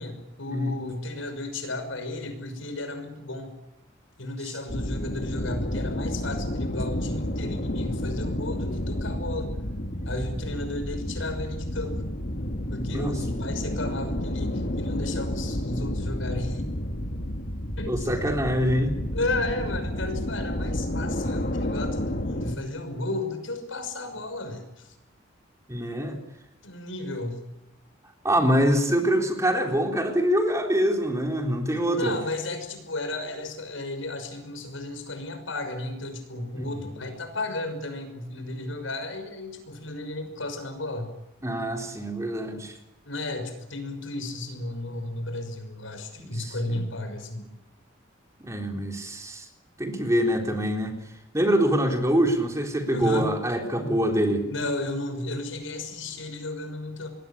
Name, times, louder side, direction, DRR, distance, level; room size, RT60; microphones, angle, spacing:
voice 1, 0.0-3.5 4.2-9.5 10.0-12.0 12.7-16.6 17.8-18.1 19.1-25.0 26.6-27.4 32.0-41.1 43.0-47.4 52.9-53.3 54.4-57.1, left 2 dB, 85° left, 8 dB, 6.1 m, -33 dB
sound 1, 4.7-22.6, left 1 dB, 50° left, 2.0 m, -30 dB
voice 2, 17.9-19.0 25.7-26.2 28.2-32.2 36.5-36.8 41.4-42.7 46.2-46.8 48.4-49.5 49.8-50.9 51.3-54.5, equal, 15° right, 2 dB, 3.7 m, -25 dB
27.0 x 21.5 x 8.6 m, 0.93 s
head